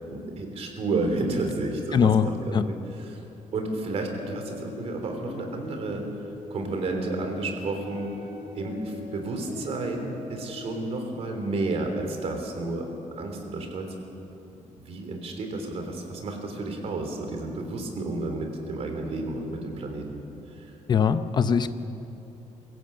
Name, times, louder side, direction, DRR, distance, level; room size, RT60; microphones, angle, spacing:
voice 1, 0.1-2.8 3.1-3.2 3.5-6.0 6.5-8.1 8.6-12.9 13.2-13.9 14.9-20.1, right 2 dB, 50° right, 4 dB, 3.5 m, -31 dB
voice 2, 1.9-2.3 2.5-2.6 20.9-21.7, left 7 dB, 35° left, 11 dB, 0.7 m, -21 dB
sound 1, 4.1-10.9, left 4 dB, 65° left, 6.7 m, -42 dB
24.0 x 15.5 x 7.9 m, 3.0 s
cardioid pair, 160°, 13 cm